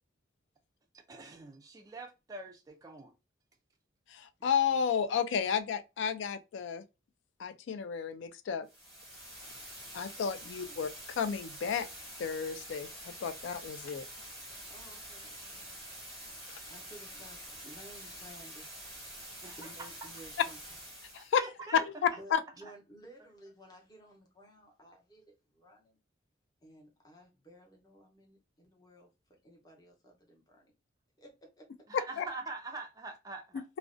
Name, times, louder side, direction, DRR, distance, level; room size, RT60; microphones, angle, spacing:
voice 1, 1.1-3.1 19.4-19.9 21.2-21.8 31.9-33.6, right 3 dB, 20° right, 0.3 m, -44 dB
voice 2, 4.1-6.8 7.4-8.7 9.9-11.9 12.2-14.1 16.4-16.6 21.0-21.4 21.7-22.4 32.2-32.3, left 7 dB, 70° left, 0.3 m, -32 dB
sound 1, 8.7-21.3, equal, ahead, 0.9 m, -47 dB
voice 3, 10.4-10.8 14.4-15.7 16.3-18.7 19.6-20.6 22.2-26.0 26.6-29.1 29.4-30.7 31.2-31.7, right 1 dB, 20° left, 0.7 m, -55 dB
2.4 x 2.1 x 2.4 m
head